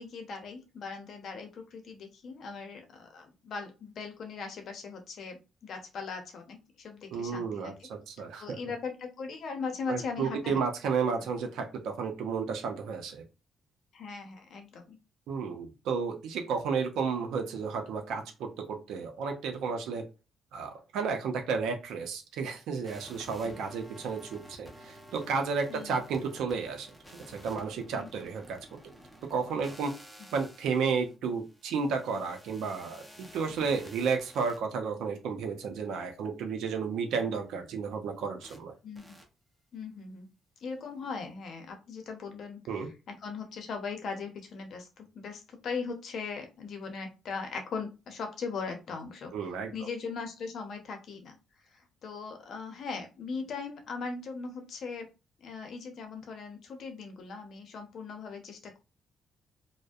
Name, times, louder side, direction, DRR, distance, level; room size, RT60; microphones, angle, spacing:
voice 1, 0.0-7.7 8.4-10.6 13.9-15.0 23.4-23.6 25.7-26.0 27.9-28.1 38.8-39.2 39.7-40.3 40.6-49.3 49.7-51.3 52.0-55.1 55.4-58.8, left 5 dB, 65° left, 5 dB, 0.7 m, -39 dB
voice 2, 7.1-8.6 9.9-13.2 15.3-20.1 20.5-28.8 29.3-29.9 30.3-38.7 42.7-42.9 49.3-49.7, right 5 dB, 85° right, 5 dB, 0.6 m, -32 dB
sound 1, 22.8-34.6 38.4-38.6 38.9-39.2, equal, ahead, 0.7 m, -52 dB
2.5 x 2.1 x 2.3 m, 0.29 s
cardioid pair, 90°, 0 cm